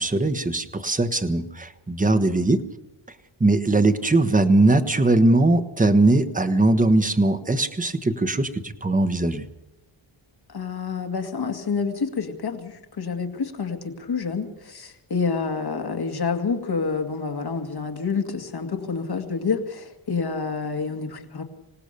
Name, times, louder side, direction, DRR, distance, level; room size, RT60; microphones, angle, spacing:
voice 1, 0.0-2.6 3.4-9.4, right 2 dB, 15° right, 10 dB, 1.2 m, -20 dB
voice 2, 10.5-21.4, left 5 dB, 50° left, 5 dB, 2.2 m, -28 dB
25.5 x 18.0 x 6.8 m, 0.95 s
wide cardioid pair, 140°, 48 cm